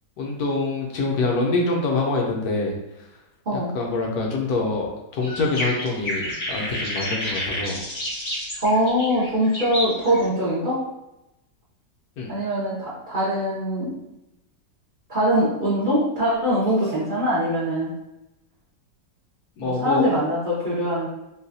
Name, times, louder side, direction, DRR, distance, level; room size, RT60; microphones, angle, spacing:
voice 1, 0.2-2.7 3.5-7.8 12.2-12.3 19.6-20.0, left 3 dB, 65° left, 0 dB, 1.0 m, -25 dB
sound 1, 5.2-10.2, left 1 dB, 40° left, 0.8 m, -30 dB
voice 2, 8.6-10.8 12.3-13.9 15.1-17.9 19.6-21.1, equal, 50° right, -8 dB, 0.6 m, -22 dB
3.9 x 2.3 x 2.6 m, 0.91 s
omnidirectional pair, 1.9 m